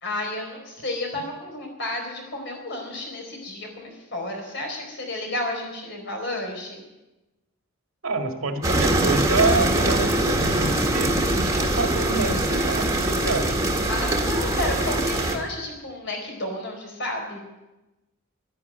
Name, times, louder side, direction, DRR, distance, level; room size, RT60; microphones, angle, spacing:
voice 1, 0.0-6.8 13.9-17.4, left 1 dB, 55° left, 2 dB, 4.3 m, -32 dB
voice 2, 8.0-13.6, right 3 dB, 75° right, 5 dB, 1.9 m, -27 dB
sound 1, 8.6-15.4, right 1 dB, 15° right, 1.8 m, -23 dB
12.0 x 11.0 x 9.3 m, 1.0 s
head